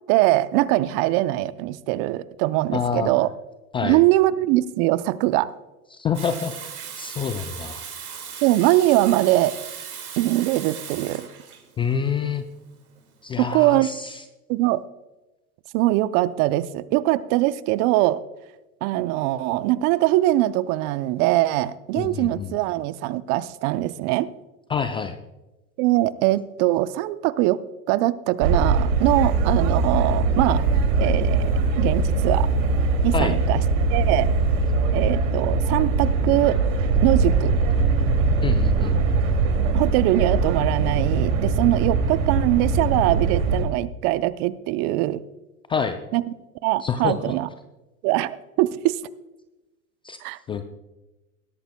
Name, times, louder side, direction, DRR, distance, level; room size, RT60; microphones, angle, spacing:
voice 1, 0.1-3.3 3.8-5.5 8.4-9.6 10.2-11.3 13.4-14.0 14.5-14.8 15.7-18.2 18.8-24.3 25.8-27.6 27.9-30.6 31.0-32.5 33.0-33.6 33.9-34.4 34.9-36.6 37.0-37.5 39.7-45.2 46.1-46.2 46.6-47.5 48.0-49.0 50.2-50.4, right 16 dB, 40° right, 16 dB, 0.6 m, -22 dB
voice 2, 2.7-3.1 3.7-4.0 5.9-6.5 7.0-7.8 11.8-12.4 13.2-14.2 21.9-22.5 24.7-25.2 33.1-33.4 38.4-39.0 45.7-46.0 46.8-47.4 50.0-50.2 50.5-50.6, left 6 dB, 15° left, 9 dB, 0.3 m, -27 dB
Water tap faucet / Sink (filling or washing), 6.1-13.8, right 7 dB, 85° right, 2.2 m, -38 dB
sound 1, 28.4-43.6, right 4 dB, 60° right, 2.6 m, -21 dB
17.5 x 13.0 x 2.2 m, 1.0 s
hypercardioid pair, 95°, 43 cm